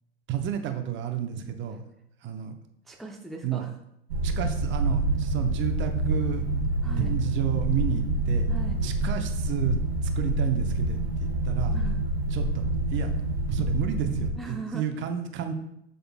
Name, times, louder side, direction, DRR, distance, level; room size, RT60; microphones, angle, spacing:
voice 1, 0.3-1.8 2.2-2.5 3.4-3.7 4.2-6.5 6.8-8.5 8.8-11.7 12.3-12.6 12.9-13.1 13.5-15.5, right 9 dB, 35° right, 5 dB, 0.9 m, -31 dB
voice 2, 2.9-3.7 6.8-7.1 8.5-8.8 11.7-12.0 14.4-14.9, right 2 dB, ahead, 0 dB, 0.7 m, -39 dB
sound 1, 4.1-14.3, right 2 dB, 65° right, 1.2 m, -27 dB
11.5 x 3.9 x 2.2 m, 0.76 s
figure-of-eight pair, 85°, 33 cm